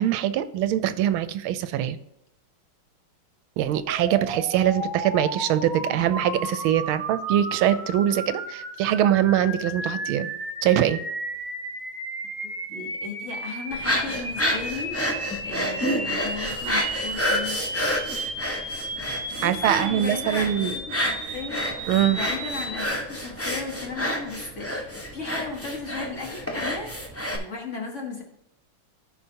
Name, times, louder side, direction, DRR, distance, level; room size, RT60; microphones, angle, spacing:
voice 1, 0.0-2.0 3.6-10.3 10.6-11.0 19.4-20.7 21.9-22.2, right 11 dB, 80° right, 13 dB, 1.4 m, -23 dB
sound 1, 3.8-22.9, right 1 dB, 10° right, 2.2 m, -34 dB
voice 2, 12.7-15.0 15.4-17.6 18.8-19.0 19.3-21.6 22.1-28.2, left 4 dB, 40° left, 1 dB, 1.3 m, -36 dB
sound 2, 13.7-27.4, equal, 15° left, 0.5 m, -29 dB
14.5 x 5.2 x 2.8 m, 0.85 s
omnidirectional pair, 2.3 m